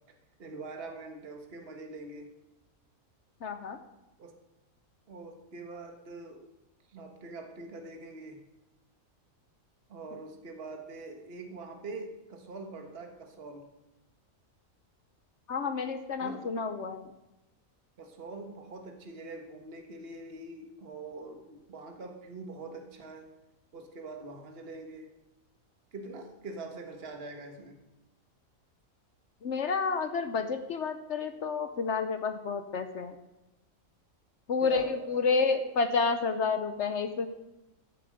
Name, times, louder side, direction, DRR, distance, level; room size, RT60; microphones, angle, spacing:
voice 1, 0.4-2.3 4.2-4.3 5.1-6.4 6.9-8.4 9.9-13.7 16.2-16.5 18.0-23.3 23.7-25.1 25.9-27.8 34.6-35.2, right 3 dB, 45° right, 4 dB, 1.6 m, -44 dB
voice 2, 3.4-3.8 15.5-17.1 29.4-33.1 34.5-37.3, left 4 dB, 60° left, 8 dB, 1.0 m, -30 dB
13.5 x 9.9 x 5.1 m, 0.97 s
omnidirectional pair, 1.4 m